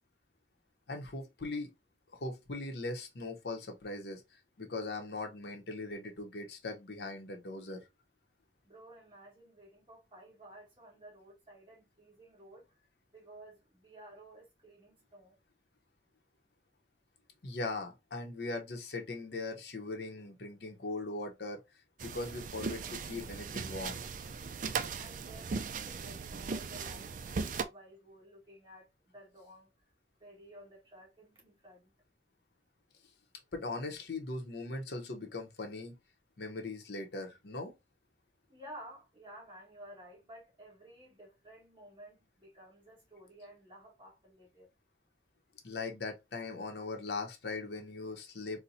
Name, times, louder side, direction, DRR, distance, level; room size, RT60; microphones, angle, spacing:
voice 1, 0.9-1.7 2.1-4.2 4.6-7.8 17.4-21.6 22.0-24.0 33.5-36.0 36.4-37.7 45.6-48.6, left 3 dB, 70° left, 0.8 m, -40 dB
voice 2, 8.6-12.7 13.1-15.3 25.0-29.7 30.2-31.9 38.5-44.7, right 1 dB, 30° right, 1.8 m, -54 dB
sound 1, 22.0-27.6, right 5 dB, 45° right, 0.4 m, -38 dB
4.2 x 2.1 x 2.6 m
head